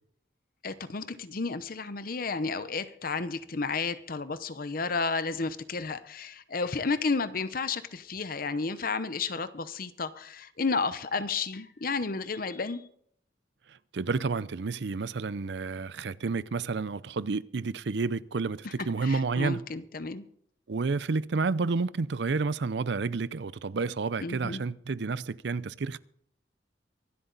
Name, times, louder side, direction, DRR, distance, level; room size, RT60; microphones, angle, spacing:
voice 1, 0.6-12.9 18.6-18.7 19.0-20.3 24.2-24.6, left 4 dB, 50° left, 0.8 m, -32 dB
voice 2, 13.7-19.6 20.7-26.0, right 4 dB, 65° right, 0.5 m, -30 dB
24.5 x 8.3 x 4.0 m
head